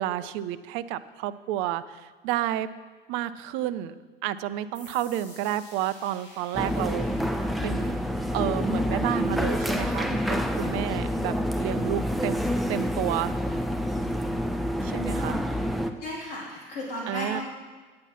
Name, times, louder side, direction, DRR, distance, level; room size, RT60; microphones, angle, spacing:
voice 1, 0.0-2.7 3.1-3.9 4.2-7.1 7.6-8.0 8.3-12.4 12.7-13.3 14.8-15.4 17.1-17.4, right 12 dB, 45° right, 14 dB, 0.6 m, -30 dB
sound 1, 4.7-12.1, left 2 dB, 35° left, 3.2 m, -54 dB
sound 2, 6.5-15.9, equal, ahead, 0.6 m, -28 dB
voice 2, 16.0-17.4, left 1 dB, 70° left, -5 dB, 3.1 m, -34 dB
9.6 x 9.0 x 5.8 m, 1.4 s
figure-of-eight pair, 75°, 29 cm